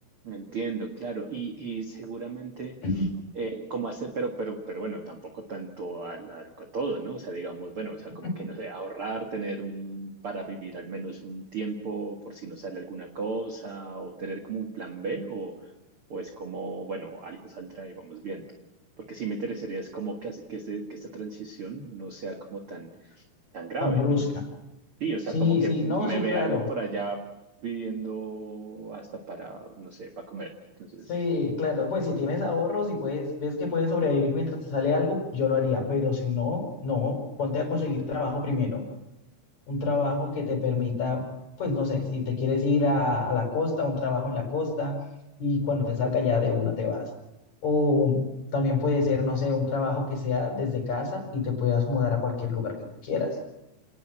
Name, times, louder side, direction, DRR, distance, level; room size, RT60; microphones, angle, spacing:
voice 1, 0.2-3.1 3.3-15.5 16.1-18.5 19.0-23.2 23.5-24.3 25.0-27.2 27.6-30.5 30.8-31.1, right 3 dB, 50° right, 3 dB, 1.8 m, -35 dB
voice 2, 23.8-24.2 25.3-26.7 31.1-38.8 39.7-41.2 41.6-45.0 45.4-47.1 47.6-48.2 48.5-52.8 53.0-53.4, left 4 dB, 40° left, 4 dB, 5.7 m, -26 dB
28.5 x 19.0 x 6.3 m, 0.90 s
omnidirectional pair, 5.1 m